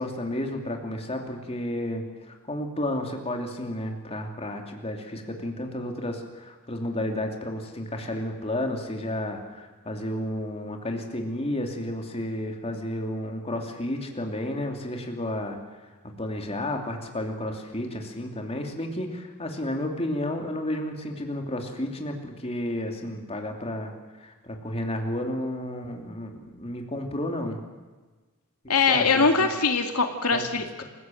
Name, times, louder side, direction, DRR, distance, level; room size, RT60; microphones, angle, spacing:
voice 1, 0.0-15.6 16.0-27.6 28.9-29.5 30.3-30.5, left 1 dB, 25° left, 3 dB, 2.8 m, -32 dB
voice 2, 28.7-30.8, left 4 dB, 90° left, 5 dB, 2.2 m, -22 dB
27.5 x 16.5 x 7.7 m, 1.3 s
head